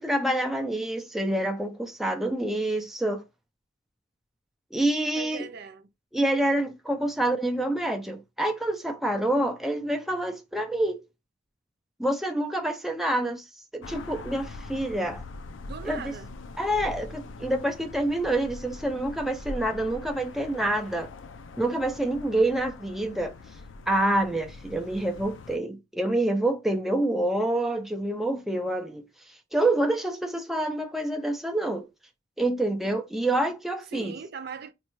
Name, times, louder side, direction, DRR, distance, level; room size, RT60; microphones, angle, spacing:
voice 1, 0.0-3.2 4.7-5.5 6.1-11.0 12.0-13.5 13.7-15.2 15.8-16.1 16.6-21.1 21.6-23.3 23.9-29.0 29.5-31.9 32.4-34.2, right 1 dB, ahead, 0.4 m, -27 dB
voice 2, 5.2-5.9 15.7-16.3 33.9-34.7, right 5 dB, 55° right, 0.5 m, -39 dB
sound 1, 13.8-25.6, left 2 dB, 70° left, 0.4 m, -42 dB
4.2 x 2.3 x 3.0 m
head